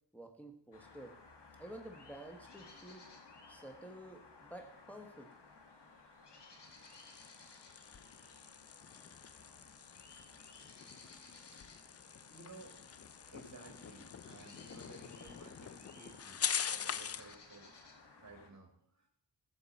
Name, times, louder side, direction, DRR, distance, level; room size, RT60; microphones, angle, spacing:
voice 1, 0.1-1.1 1.6-3.0 3.5-5.3, right 1 dB, 5° left, 3 dB, 1.3 m, -51 dB
sound 1, 0.7-18.5, left 3 dB, 70° left, 1.6 m, -58 dB
sound 2, 6.7-17.4, left 7 dB, 35° left, 0.4 m, -44 dB
voice 2, 11.5-11.9 12.3-19.1, right 2 dB, 40° right, 1 dB, 2.4 m, -56 dB
13.0 x 7.1 x 4.2 m, 0.72 s
cardioid pair, 55°, 42 cm